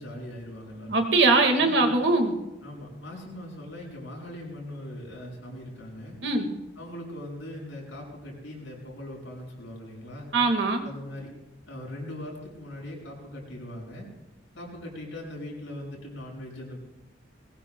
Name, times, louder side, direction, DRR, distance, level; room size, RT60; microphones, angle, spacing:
voice 1, 0.0-1.0 1.6-2.0 2.6-6.2 6.8-10.3 10.8-11.3 11.7-14.1 14.5-16.8, left 1 dB, 75° left, -1 dB, 6.5 m, -40 dB
voice 2, 0.9-2.4 6.2-6.5 10.3-10.8, right 3 dB, 60° right, 5 dB, 1.8 m, -21 dB
21.5 x 19.0 x 2.3 m, 1.0 s
head